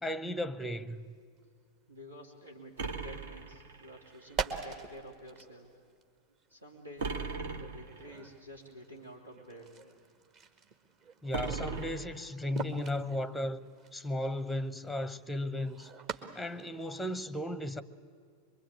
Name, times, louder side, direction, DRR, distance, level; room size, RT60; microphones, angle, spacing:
voice 1, 0.0-1.1 11.2-15.9 16.3-17.8, left 1 dB, ahead, 0.8 m, -35 dB
sound 1, 0.9-1.1 1.4-1.5 2.5-2.6 2.9-3.2 3.9-17.2, right 5 dB, 35° right, 1.7 m, -44 dB
voice 2, 1.9-5.7 6.5-7.1 7.6-9.7, equal, 85° right, 2.7 m, -50 dB
sound 2, 2.8-4.2 7.0-8.1 11.3-12.6, right 4 dB, 60° right, 1.6 m, -38 dB
24.5 x 23.0 x 8.8 m
figure-of-eight pair, 90°, 0 cm